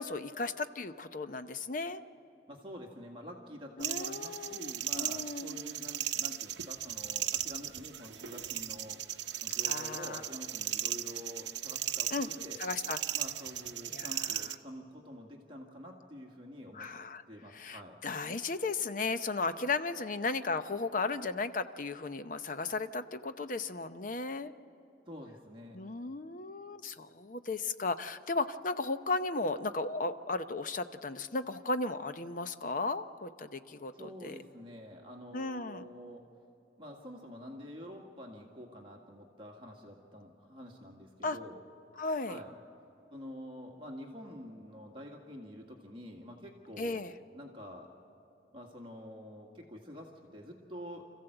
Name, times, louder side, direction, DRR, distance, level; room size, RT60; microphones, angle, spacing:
voice 1, 0.0-2.0 3.8-5.6 9.6-10.2 12.1-12.3 12.6-13.0 13.9-14.4 16.7-17.2 17.5-24.5 25.7-34.4 35.3-35.8 41.2-41.4 42.0-42.4 46.8-47.1, left 3 dB, 45° left, 10 dB, 0.7 m, -35 dB
voice 2, 2.5-9.0 9.4-12.6 13.1-16.9 17.3-18.0 25.1-25.8 33.9-36.3 36.8-41.6 42.3-42.5 43.1-47.1 47.3-47.9 48.5-51.2, equal, 30° right, 0 dB, 1.8 m, -47 dB
sound 1, 3.8-14.6, right 12 dB, 75° right, 0.7 m, -36 dB
26.5 x 15.0 x 7.9 m, 2.9 s
head